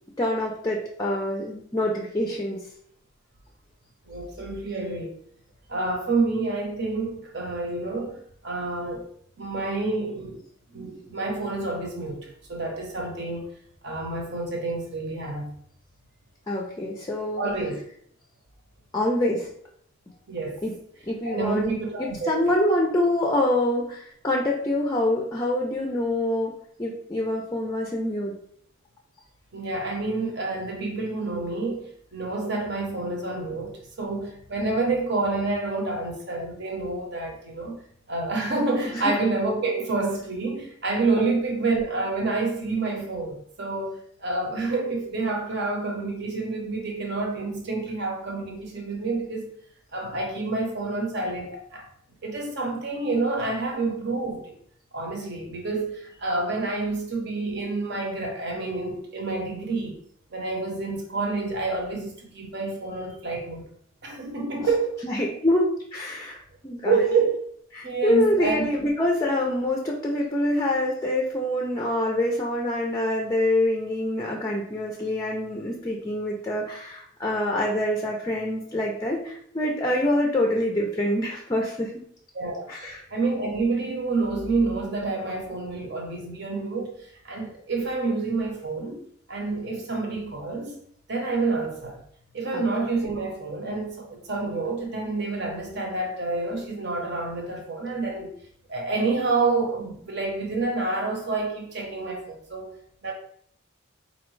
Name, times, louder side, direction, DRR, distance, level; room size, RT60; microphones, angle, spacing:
voice 1, 0.2-2.7 16.5-17.5 18.9-19.5 20.6-20.7 21.1-21.7 22.0-26.5 26.8-28.3 39.0-39.1 41.2-41.3 65.0-65.7 65.9-67.0 67.7-81.9 82.7-83.0 92.5-92.6, left 1 dB, 15° left, 0.4 m, -25 dB
voice 2, 4.1-5.2 5.7-9.1 9.4-10.4 10.7-13.4 13.8-15.5 17.4-17.8 20.3-20.6 21.2-22.5 29.5-37.8 38.1-49.5 49.9-51.9 52.2-54.5 54.9-60.0 60.3-63.7 64.0-65.0 66.9-67.4 67.8-68.7 82.3-89.0 89.3-90.8 91.1-92.0 92.3-98.3 98.7-102.7 103.0-103.1, right 3 dB, 55° right, 0.9 m, -28 dB
4.2 x 2.7 x 3.1 m
head